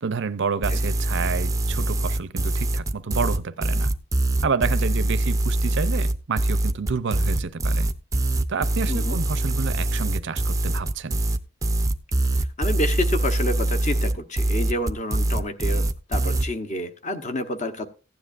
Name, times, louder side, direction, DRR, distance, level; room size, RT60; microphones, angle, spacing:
voice 1, 0.0-3.9 4.4-7.9 8.5-11.2, right 5 dB, 55° right, 0.5 m, -29 dB
sound 1, 0.6-16.5, right 1 dB, 15° right, 0.5 m, -23 dB
voice 2, 8.9-9.2 12.6-17.9, left 1 dB, 35° left, 1.0 m, -29 dB
15.5 x 9.8 x 2.5 m
head